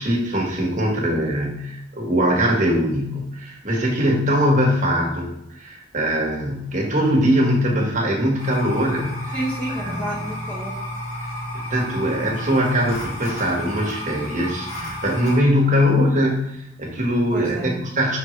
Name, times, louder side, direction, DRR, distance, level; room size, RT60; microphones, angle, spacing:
voice 1, 0.0-9.3 9.8-10.2 11.5-18.2, equal, 40° right, -2 dB, 1.4 m, -21 dB
sound 1, 8.4-15.4, left 1 dB, 30° left, 2.0 m, -32 dB
voice 2, 9.3-10.8 17.3-17.9, right 1 dB, 10° left, -5 dB, 1.0 m, -30 dB
5.6 x 5.3 x 3.2 m, 0.79 s
head